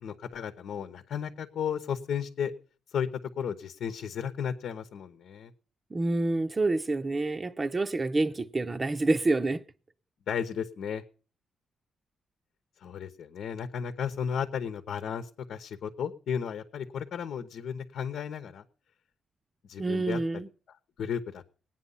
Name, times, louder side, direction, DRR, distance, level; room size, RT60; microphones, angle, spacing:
voice 1, 0.0-2.5 2.9-3.1 3.4-5.5 10.3-11.0 12.8-18.6 19.7-20.2 21.0-21.4, left 7 dB, 75° left, 1.0 m, -34 dB
voice 2, 5.9-9.6 19.8-20.5, right 2 dB, 25° right, 0.7 m, -27 dB
20.0 x 9.2 x 5.6 m
cardioid pair, 100°, 0 cm